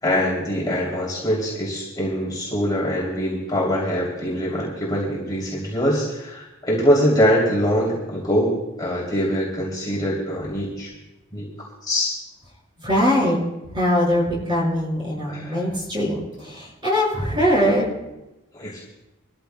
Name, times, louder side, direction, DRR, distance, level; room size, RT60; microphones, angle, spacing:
voice 1, 0.0-10.9 11.3-12.1 15.3-15.6 18.5-18.8, equal, 20° left, -5 dB, 3.1 m, -23 dB
voice 2, 12.8-17.9, equal, 20° right, -4 dB, 5.5 m, -22 dB
25.0 x 14.0 x 2.3 m, 0.99 s
head